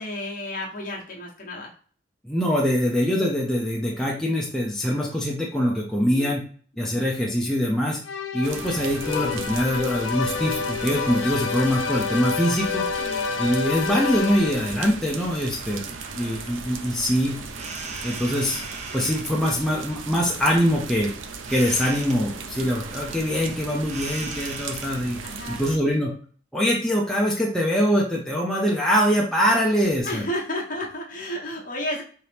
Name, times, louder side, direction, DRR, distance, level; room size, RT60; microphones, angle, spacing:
voice 1, 0.0-1.7 5.9-6.4 13.0-13.2 25.2-25.7 30.0-32.0, left 1 dB, 45° left, -2 dB, 1.1 m, -32 dB
voice 2, 2.2-6.4 6.8-8.0 8.3-12.8 13.4-17.4 18.0-18.6 18.9-21.1 21.5-25.2 25.5-26.1 26.5-30.2, equal, ahead, -4 dB, 0.7 m, -23 dB
sound 1, 8.0-14.9, left 6 dB, 80° left, 0.5 m, -29 dB
sound 2, 8.4-25.8, right 5 dB, 85° right, 0.5 m, -37 dB
sound 3, 15.4-25.9, right 3 dB, 35° right, 0.6 m, -40 dB
4.3 x 3.0 x 3.4 m, 0.43 s
head